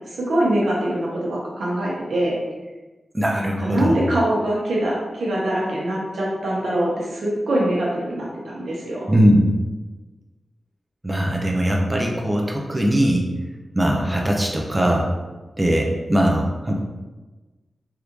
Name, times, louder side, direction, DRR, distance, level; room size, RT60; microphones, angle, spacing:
voice 1, 0.1-2.4 3.3-9.1, right 1 dB, 85° right, -5 dB, 0.9 m, -23 dB
voice 2, 3.1-4.0 9.1-9.6 11.0-13.2 13.8-15.1 15.6-16.8, equal, 15° right, -1 dB, 0.4 m, -20 dB
3.4 x 2.5 x 3.0 m, 1.2 s
wide cardioid pair, 130°, 0 cm